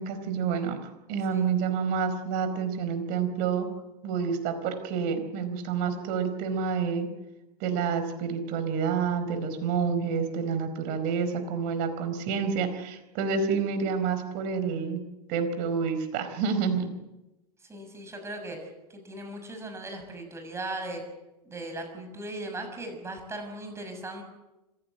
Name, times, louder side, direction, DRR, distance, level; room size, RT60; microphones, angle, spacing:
voice 1, 0.0-3.7 4.0-7.1 7.6-15.0 15.3-16.9, right 6 dB, 45° right, 9 dB, 4.5 m, -28 dB
voice 2, 17.7-21.0 21.4-24.2, right 2 dB, 15° right, 5 dB, 6.6 m, -38 dB
26.0 x 16.0 x 7.8 m, 1.0 s
hypercardioid pair, 105°, 21 cm